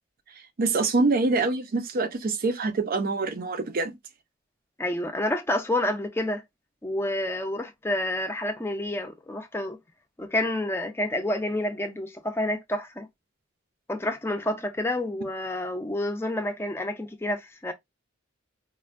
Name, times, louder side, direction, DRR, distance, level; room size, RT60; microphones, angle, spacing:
voice 1, 0.6-3.9, right 3 dB, 45° right, 0.5 m, -25 dB
voice 2, 4.8-6.4 6.8-9.8 10.2-13.1 13.9-17.7, left 1 dB, 10° left, 0.5 m, -29 dB
4.2 x 2.1 x 2.4 m
head